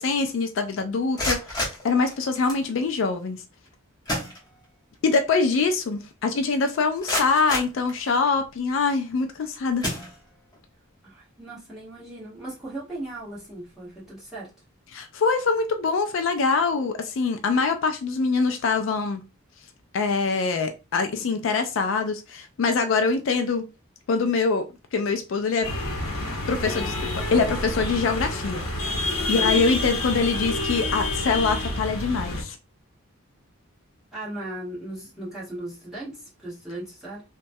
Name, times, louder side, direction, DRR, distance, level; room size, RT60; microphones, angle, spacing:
voice 1, 0.0-3.4 5.0-9.8 14.9-19.2 19.9-23.6 24.1-25.7 26.5-28.6 29.3-32.6, left 4 dB, 65° left, 0.3 m, -24 dB
sound 1, 1.0-2.7 3.7-3.8 4.1-5.0 5.3-5.4 6.0-6.1 6.6-8.5 9.1-9.3 9.8-10.6, left 1 dB, 20° left, 0.9 m, -31 dB
voice 2, 11.0-14.5 29.2-29.6 34.1-37.2, right 1 dB, ahead, 1.3 m, -37 dB
sound 2, 25.6-32.4, left 2 dB, 85° left, 0.8 m, -28 dB
3.0 x 2.2 x 2.6 m
head